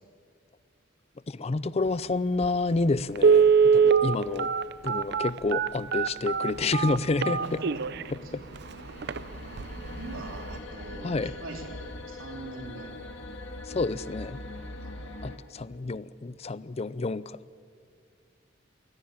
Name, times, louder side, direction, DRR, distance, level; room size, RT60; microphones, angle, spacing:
voice 1, 1.3-4.5 4.8-7.4 8.1-8.4 11.0-11.3 13.7-14.4 15.2-17.6, left 3 dB, 30° left, 18 dB, 0.5 m, -29 dB
Telephone, 2.4-2.5 3.2-8.0 8.6-8.7 9.0-9.2 9.6-9.9 10.2-10.3, right 6 dB, 55° right, 0.6 m, -22 dB
sound 1, 6.5-15.4, left 1 dB, 60° left, 2.0 m, -42 dB
voice 2, 7.2-7.8 8.2-8.3 10.0-12.9 14.8-14.9, right 2 dB, 80° right, 2 dB, 3.5 m, -42 dB
23.0 x 17.5 x 8.8 m, 2.3 s
head